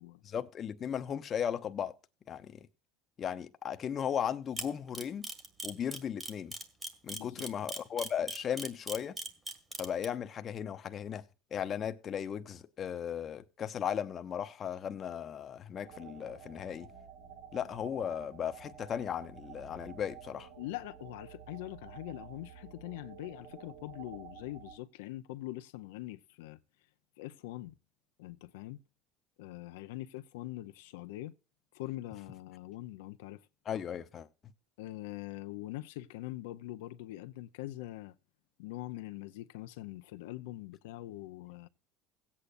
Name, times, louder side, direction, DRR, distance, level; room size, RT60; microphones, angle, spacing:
voice 1, 0.2-2.0 2.3-2.7 3.2-5.3 5.6-6.5 7.0-9.2 9.8-11.2 11.5-16.9 17.5-20.5 33.7-34.3, left 8 dB, 35° left, 0.8 m, -36 dB
Camera, 4.6-10.0, right 2 dB, 20° right, 1.7 m, -38 dB
voice 2, 7.1-7.5 20.6-26.6 27.2-27.7 28.2-28.8 29.4-31.3 31.7-33.4 34.8-38.1 38.6-41.7, left 16 dB, 90° left, 0.6 m, -43 dB
sound 1, 15.8-24.8, right 8 dB, 70° right, 4.5 m, -51 dB
17.0 x 8.5 x 2.5 m
supercardioid pair, 125°, 0 cm